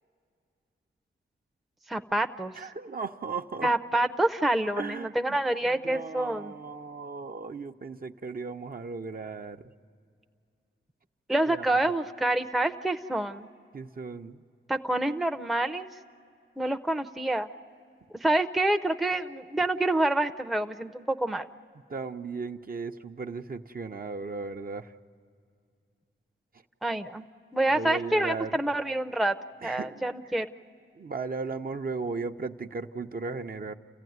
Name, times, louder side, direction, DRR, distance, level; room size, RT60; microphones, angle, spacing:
voice 1, 1.9-2.6 3.6-6.5 11.3-13.5 14.7-15.9 16.6-17.5 18.2-21.5 26.8-27.2 27.5-30.5, right 1 dB, ahead, 6 dB, 0.6 m, -27 dB
voice 2, 2.5-3.7 4.8-5.4 5.6-9.7 11.5-11.8 13.7-14.4 21.9-24.9 27.7-28.6 29.6-30.0 31.0-33.7, right 4 dB, 45° right, 5 dB, 0.7 m, -36 dB
29.0 x 15.0 x 9.4 m, 2.4 s
cardioid pair, 70°, 21 cm